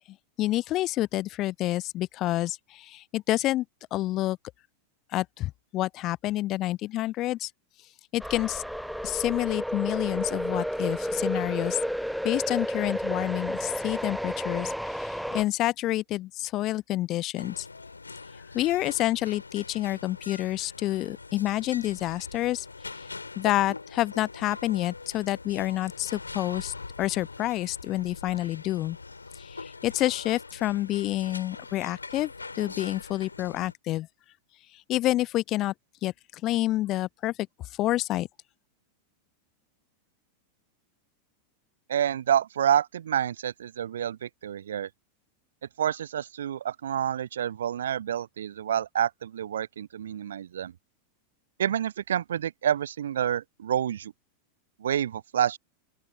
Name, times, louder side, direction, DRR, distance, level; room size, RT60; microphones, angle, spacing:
voice 1, 0.4-3.6 3.9-4.4 5.1-7.5 8.1-8.6 9.0-11.8 12.2-17.7 18.5-22.7 23.4-29.0 29.4-32.3 32.6-34.1 34.9-35.7 36.0-36.1 36.4-37.3 37.8-38.3, left 16 dB, 35° left, 0.7 m, -28 dB
sound 1, 8.2-15.4, equal, ahead, 0.5 m, -31 dB
sound 2, 17.4-33.7, left 4 dB, 80° left, 4.0 m, -43 dB
voice 2, 41.9-44.9 45.8-50.7 51.6-54.1 54.8-55.6, right 10 dB, 65° right, 0.5 m, -28 dB
open air
figure-of-eight pair, 90°, 0 cm